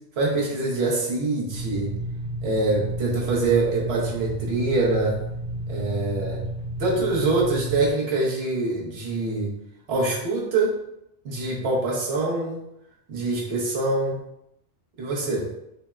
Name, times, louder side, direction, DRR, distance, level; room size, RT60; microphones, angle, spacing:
voice 1, 0.2-1.9 2.4-5.2 5.7-6.4 6.8-9.5 9.9-10.7 11.2-12.6 13.1-14.2 15.0-15.5, right 3 dB, 80° right, -3 dB, 1.1 m, -24 dB
sound 1, 1.5-7.9, right 1 dB, 55° right, 0.5 m, -32 dB
4.0 x 2.0 x 2.2 m, 0.80 s
omnidirectional pair, 1.1 m